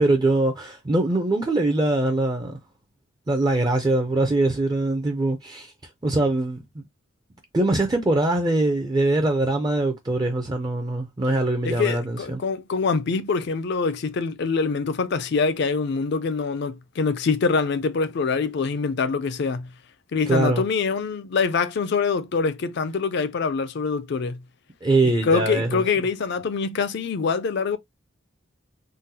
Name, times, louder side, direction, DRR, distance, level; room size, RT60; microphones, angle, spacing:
voice 1, 0.0-2.6 3.3-5.7 6.0-6.8 7.5-12.4 20.3-20.6 24.8-25.8, right 2 dB, 20° right, 0.4 m, -22 dB
voice 2, 11.6-19.7 20.1-24.4 25.0-27.8, left 4 dB, 55° left, 0.4 m, -24 dB
3.7 x 2.0 x 2.7 m
head